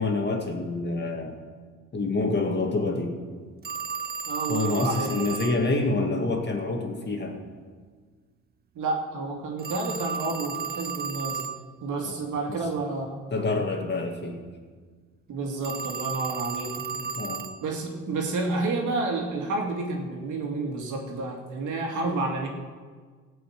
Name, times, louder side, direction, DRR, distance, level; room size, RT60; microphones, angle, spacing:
voice 1, 0.0-1.4 1.9-3.2 4.5-7.4 12.0-12.6 13.3-14.4 17.2-17.5, left 3 dB, 35° left, 2 dB, 2.3 m, -27 dB
Telephone, 3.6-5.6 9.6-11.6 15.6-17.6, right 6 dB, 30° right, 0.5 m, -33 dB
voice 2, 4.3-5.2 8.7-11.5 11.8-13.2 15.3-17.1 17.6-22.5, right 3 dB, 80° right, 0 dB, 2.4 m, -30 dB
15.5 x 5.8 x 8.7 m, 1.5 s
cardioid pair, 90°, 30 cm